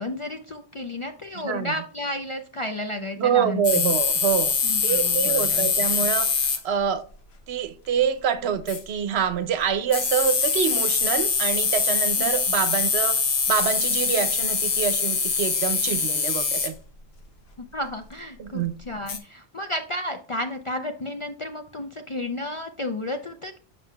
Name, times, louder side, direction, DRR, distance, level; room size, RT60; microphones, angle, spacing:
voice 1, 0.0-3.9 4.6-5.7 12.2-12.3 17.6-23.6, left 1 dB, 45° left, 0.4 m, -32 dB
voice 2, 1.4-1.7 3.1-4.5 4.8-7.0 7.5-13.2 13.5-16.7 18.4-18.8, right 7 dB, 75° right, 0.9 m, -26 dB
sound 1, 3.6-6.6 8.7-8.8 9.9-16.7 19.1-19.2, left 5 dB, 70° left, 1.2 m, -23 dB
7.4 x 5.8 x 2.3 m
omnidirectional pair, 1.1 m